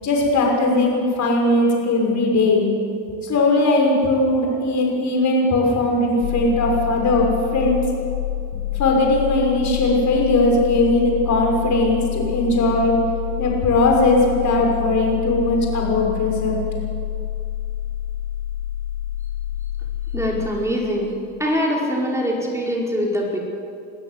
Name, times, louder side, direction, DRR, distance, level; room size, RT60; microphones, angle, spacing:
voice 1, 0.0-2.7 3.2-7.8 8.8-12.9 13.4-16.6, left 2 dB, 45° left, 0 dB, 6.4 m, -19 dB
sound 1, 6.2-20.3, left 12 dB, 80° left, 7.3 m, -28 dB
voice 2, 20.1-21.1 21.4-23.4, equal, 5° right, -2 dB, 5.0 m, -23 dB
22.5 x 13.0 x 9.8 m, 2.5 s
supercardioid pair, 105°, 41 cm